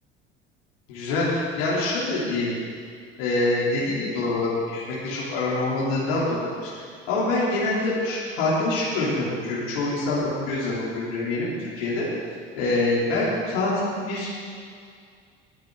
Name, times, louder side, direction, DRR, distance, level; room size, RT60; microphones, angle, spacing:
voice 1, 0.9-2.5 3.2-6.7 7.1-12.1 12.6-14.4, left 2 dB, 70° left, -7 dB, 3.1 m, -25 dB
18.5 x 8.0 x 3.8 m, 2.1 s
figure-of-eight pair, 60°, 30 cm